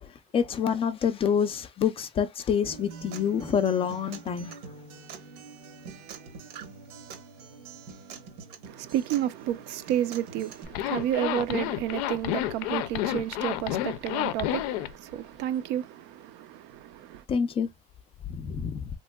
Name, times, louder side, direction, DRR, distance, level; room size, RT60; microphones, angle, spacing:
voice 1, 0.3-4.5 17.3-17.7 18.3-18.9, left 7 dB, 30° left, 0.4 m, -27 dB
Acoustic guitar, 2.7-10.6, right 5 dB, 80° right, 1.2 m, -45 dB
voice 2, 8.6-17.2, right 11 dB, 60° right, 0.5 m, -31 dB
Zipper (clothing), 10.7-14.9, left 13 dB, 85° left, 0.5 m, -30 dB
3.5 x 3.0 x 2.2 m
cardioid pair, 145°, 20 cm